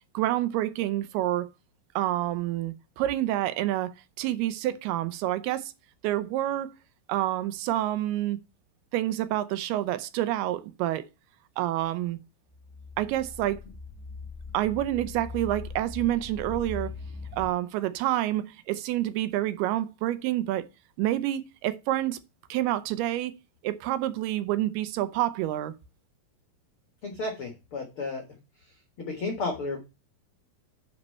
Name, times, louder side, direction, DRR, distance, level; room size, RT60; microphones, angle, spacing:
voice 1, 0.1-1.5 2.0-5.7 6.0-6.7 7.1-8.4 8.9-11.1 11.6-12.2 13.0-13.6 14.5-16.9 17.3-20.7 21.0-22.2 22.5-23.3 23.6-25.7, right 14 dB, 80° right, 2.5 m, -28 dB
sound 1, 12.5-17.5, left 4 dB, 10° left, 2.5 m, -40 dB
voice 2, 27.0-28.2 28.6-29.8, left 3 dB, 85° left, 1.2 m, -33 dB
9.8 x 4.2 x 5.4 m
omnidirectional pair, 4.7 m